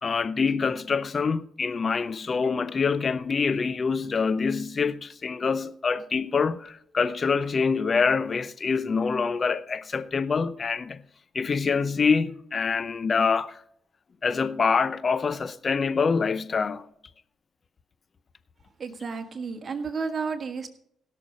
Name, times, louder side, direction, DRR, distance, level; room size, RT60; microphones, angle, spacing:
voice 1, 0.0-11.0 11.3-13.6 14.2-16.8, left 5 dB, 45° left, 0.7 m, -25 dB
voice 2, 18.8-20.7, right 5 dB, 45° right, 1.6 m, -32 dB
16.5 x 6.7 x 5.0 m
supercardioid pair, 55°, 0 cm